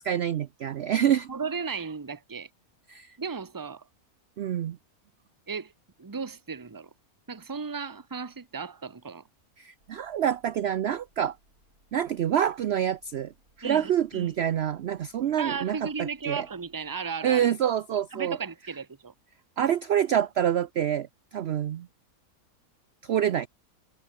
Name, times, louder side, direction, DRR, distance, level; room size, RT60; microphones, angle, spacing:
voice 1, 0.0-1.3 2.9-3.2 4.4-4.8 9.6-11.4 11.9-13.3 13.6-16.5 17.2-18.4 19.6-21.9 23.0-23.5, right 10 dB, 60° right, 0.7 m, -27 dB
voice 2, 1.3-2.5 3.2-3.9 5.5-5.7 6.0-6.9 7.3-9.2 13.6-14.3 15.4-17.5 18.1-19.1, right 5 dB, 15° right, 0.9 m, -35 dB
sound 1, 9.8-17.0, right 2 dB, 85° right, 8.2 m, -66 dB
omnidirectional pair, 1.5 m